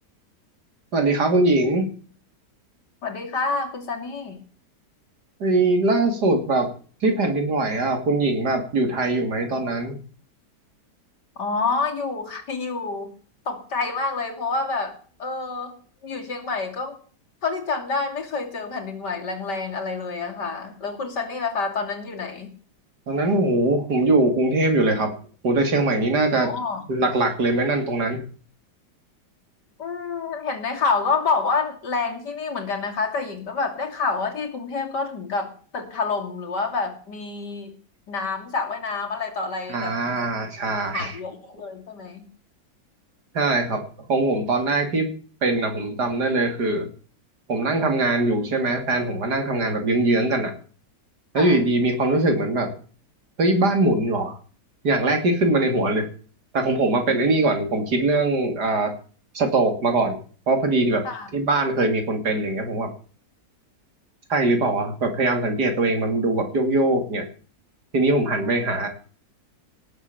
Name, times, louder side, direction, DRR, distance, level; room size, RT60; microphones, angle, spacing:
voice 1, 0.9-1.9 5.4-6.7 7.0-10.0 23.1-25.1 25.4-26.5 26.9-28.2 39.7-41.2 43.3-43.8 44.1-45.1 45.4-46.9 47.5-50.5 51.3-52.7 53.4-54.4 54.8-56.1 56.5-58.9 59.3-60.2 60.5-61.0 61.3-62.9 64.3-67.3 67.9-68.9, right 2 dB, 70° right, 6 dB, 3.3 m, -22 dB
voice 2, 3.0-4.4 11.4-13.1 13.5-15.8 16.0-17.0 17.4-22.5 26.4-26.8 29.8-37.7 38.1-40.0 40.9-42.2 51.3-51.6 57.1-57.2 61.0-61.3 68.4-68.5, left 4 dB, 75° left, 4 dB, 3.4 m, -28 dB
18.5 x 7.9 x 7.0 m, 0.42 s
omnidirectional pair, 1.9 m